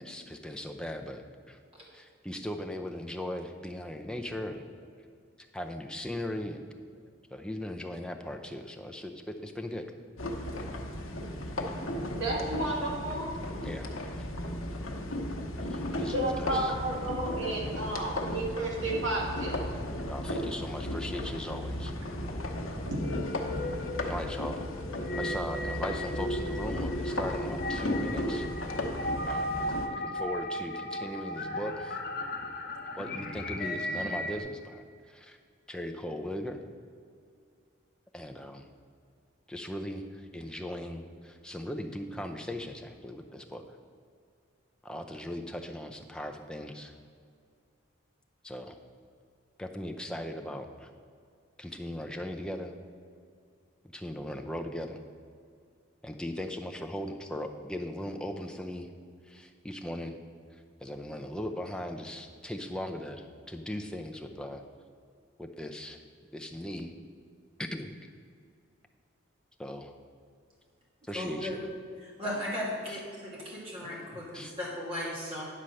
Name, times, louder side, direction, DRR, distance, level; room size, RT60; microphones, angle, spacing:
voice 1, 0.0-1.6 1.9-4.7 5.5-6.6 7.3-9.9 13.6-13.9 15.7-16.7 20.1-21.9 24.0-24.6 25.2-28.5 29.3-29.5 29.9-32.0 33.0-34.8 35.1-35.4 35.7-36.6 38.1-38.6 39.5-40.0 40.3-43.6 44.8-46.9 48.4-48.8 49.6-50.9 51.6-52.7 53.9-55.0 56.0-58.9 59.3-60.2 60.8-64.6 65.4-66.0 66.3-66.9 67.6-67.9 69.6-69.9 71.1-71.6 74.3-74.5, left 1 dB, 5° left, 3 dB, 0.5 m, -38 dB
sound 1, 10.2-29.9, left 1 dB, 85° left, 0.9 m, -35 dB
voice 2, 12.2-13.3 16.1-19.6 22.8-23.0, right 1 dB, 75° right, -3 dB, 1.9 m, -32 dB
sound 2, 22.9-34.4, left 1 dB, 50° left, 0.6 m, -36 dB
voice 3, 71.1-71.6 72.0-75.4, left 1 dB, 30° right, -6 dB, 2.3 m, -36 dB
9.7 x 4.4 x 6.4 m, 2.2 s
head